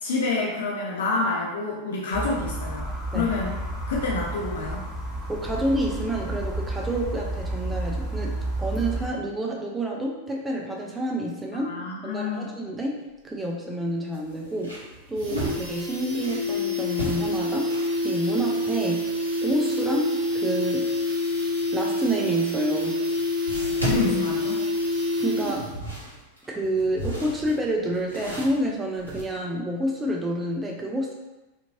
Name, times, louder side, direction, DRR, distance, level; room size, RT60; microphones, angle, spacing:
voice 1, 0.0-3.5 3.9-4.8 11.7-12.5 23.8-24.6, left 3 dB, 60° left, -2 dB, 0.4 m, -28 dB
sound 1, 2.1-9.1, right 1 dB, 5° left, 1.0 m, -31 dB
voice 2, 5.3-17.8 18.0-19.1 19.4-20.9 21.7-23.0 25.2-25.7 26.5-31.1, right 1 dB, 10° right, -1 dB, 0.3 m, -29 dB
sound 2, 12.9-13.1 13.5-13.6 14.1-16.5 16.9-18.0 22.2-22.3 23.5-25.0 25.5-29.2, equal, 85° left, 0.8 m, -35 dB
sound 3, 14.3-14.4 14.6-14.7 15.0-25.9 26.1-26.2, left 1 dB, 55° right, 0.8 m, -27 dB
2.9 x 2.5 x 2.4 m, 1.1 s
figure-of-eight pair, 90°, 0 cm